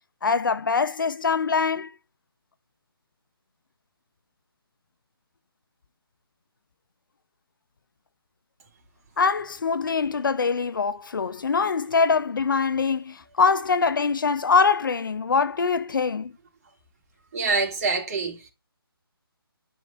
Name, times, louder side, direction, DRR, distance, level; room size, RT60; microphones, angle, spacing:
voice 1, 0.2-1.9 9.2-16.3, left 5 dB, 55° left, 0.8 m, -23 dB
voice 2, 17.3-18.5, right 4 dB, 35° right, 3.4 m, -25 dB
11.0 x 5.4 x 5.3 m
figure-of-eight pair, 150°, 13 cm